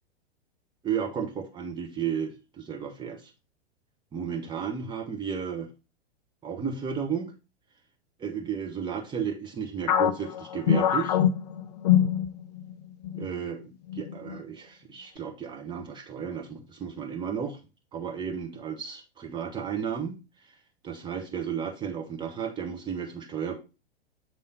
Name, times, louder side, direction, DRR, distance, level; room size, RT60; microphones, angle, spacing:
voice 1, 0.8-3.2 4.1-5.7 6.4-7.3 8.2-11.2 13.1-17.6 17.9-20.2 20.8-23.5, right 7 dB, 15° right, 3 dB, 1.1 m, -33 dB
sound 1, 9.9-12.7 13.0-13.3 13.9-14.4, left 10 dB, 40° left, 0.4 m, -24 dB
7.8 x 3.6 x 4.0 m, 0.29 s
figure-of-eight pair, 100°, 32 cm